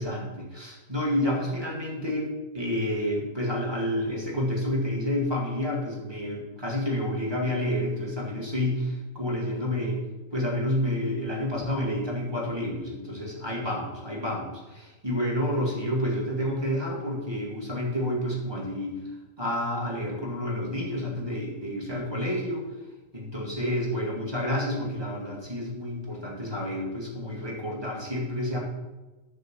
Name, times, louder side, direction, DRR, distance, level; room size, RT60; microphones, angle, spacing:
voice 1, 0.0-2.3 2.5-10.0 10.3-19.0 19.4-22.6 23.1-28.6, left 1 dB, 25° right, -3 dB, 0.5 m, -29 dB
10.5 x 4.3 x 7.3 m, 1.2 s
omnidirectional pair, 3.7 m